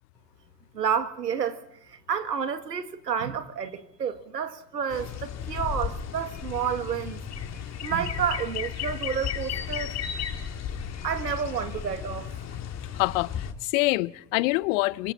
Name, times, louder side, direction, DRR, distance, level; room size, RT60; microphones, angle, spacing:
voice 1, 0.7-1.6 1.9-7.2 7.8-10.0 11.0-12.3, right 7 dB, 80° right, 1.9 m, -30 dB
sound 1, 4.9-13.5, left 8 dB, 35° left, 2.7 m, -34 dB
voice 2, 12.9-15.1, left 22 dB, 55° left, 0.8 m, -26 dB
27.0 x 24.5 x 4.2 m
figure-of-eight pair, 75°, 47 cm